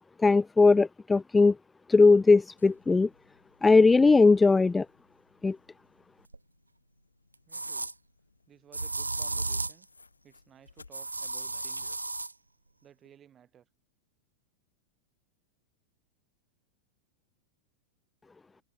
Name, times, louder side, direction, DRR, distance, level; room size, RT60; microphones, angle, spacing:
voice 1, 0.2-1.6 1.9-3.1 3.6-4.9 5.4-5.6, left 3 dB, 10° left, 0.4 m, -19 dB
sound 1, 2.6-12.0, left 4 dB, 80° left, 5.3 m, -61 dB
sound 2, 6.3-6.4 7.5-7.9 8.7-9.8 10.9-12.3, right 2 dB, 80° right, 0.7 m, -34 dB
voice 2, 7.5-7.9 8.5-9.9 10.2-12.0 12.8-13.7 18.4-18.6, right 9 dB, 25° right, 8.0 m, -57 dB
open air
figure-of-eight pair, 90°, 0 cm